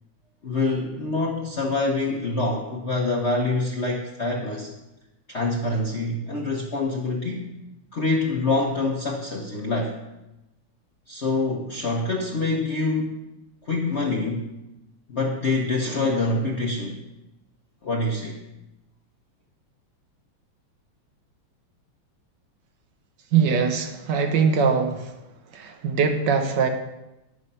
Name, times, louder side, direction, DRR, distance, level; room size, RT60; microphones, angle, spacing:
voice 1, 0.4-4.7 5.3-7.5 7.9-9.9 11.1-13.2 13.6-14.5 15.1-17.0 17.8-18.4, left 2 dB, 50° left, -1 dB, 0.9 m, -25 dB
voice 2, 23.3-25.1 25.5-26.7, right 6 dB, 60° right, 5 dB, 1.4 m, -22 dB
10.5 x 6.4 x 5.5 m, 0.96 s
omnidirectional pair, 2.4 m